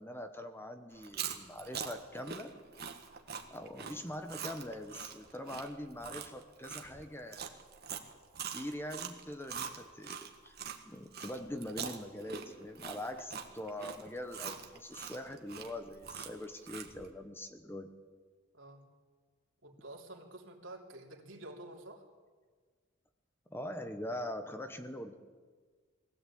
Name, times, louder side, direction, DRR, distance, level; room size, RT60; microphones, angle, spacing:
voice 1, 0.0-2.5 3.5-7.6 8.5-10.6 10.8-17.9 23.5-25.1, left 1 dB, 10° left, 7 dB, 1.1 m, -43 dB
Chewing mastication, 1.0-10.8 11.1-17.1, right 7 dB, 50° right, 1.8 m, -43 dB
voice 2, 18.5-18.9 19.6-22.1, right 1 dB, 70° right, 1 dB, 3.2 m, -49 dB
21.5 x 16.5 x 8.6 m, 1.5 s
head